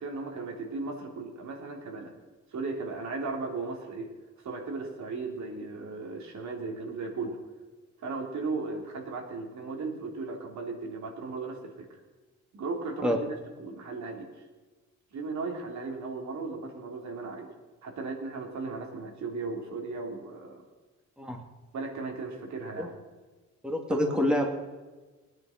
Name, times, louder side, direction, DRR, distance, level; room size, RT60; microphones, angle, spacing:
voice 1, 0.0-2.1 2.5-4.1 4.4-7.4 8.0-11.9 12.5-14.3 15.1-17.5 17.8-20.6 21.7-22.9 23.9-24.2, right 3 dB, 65° right, 1 dB, 3.3 m, -36 dB
voice 2, 23.6-24.4, left 1 dB, 5° right, 1 dB, 2.5 m, -26 dB
19.0 x 9.9 x 5.9 m, 1.3 s
cardioid pair, 90°, 30 cm